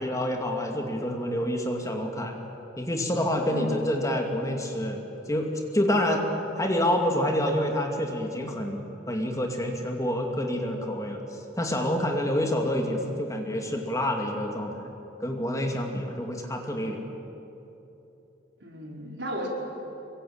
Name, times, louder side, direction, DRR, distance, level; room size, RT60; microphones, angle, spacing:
voice 1, 0.0-2.4 2.8-5.0 5.3-5.5 5.7-6.2 6.6-8.8 9.1-11.2 11.6-14.7 15.2-17.0, left 1 dB, 15° left, 2 dB, 2.5 m, -27 dB
voice 2, 18.6-19.5, equal, 70° right, -1 dB, 5.1 m, -35 dB
26.5 x 23.0 x 8.8 m, 2.9 s
head